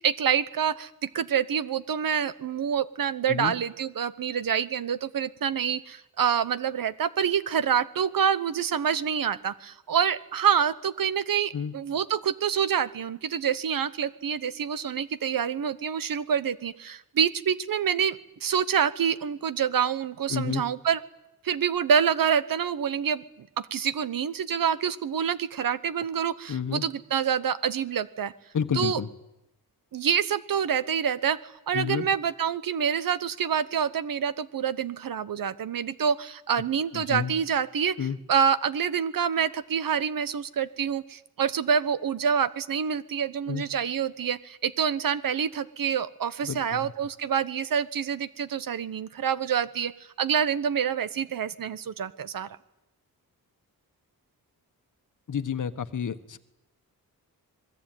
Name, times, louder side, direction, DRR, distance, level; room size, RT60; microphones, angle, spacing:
voice 1, 0.0-21.0 21.4-28.3 28.7-29.0 29.9-37.9 38.3-49.9 50.2-52.5, right 7 dB, 65° right, 16 dB, 1.1 m, -27 dB
voice 2, 20.3-20.6 26.5-26.8 28.5-29.1 31.7-32.1 36.9-37.3 38.0-38.2 43.5-43.6 46.4-46.8 55.3-56.4, left 7 dB, 55° left, 11 dB, 1.4 m, -30 dB
25.5 x 21.0 x 9.2 m, 0.89 s
wide cardioid pair, 115°, 36 cm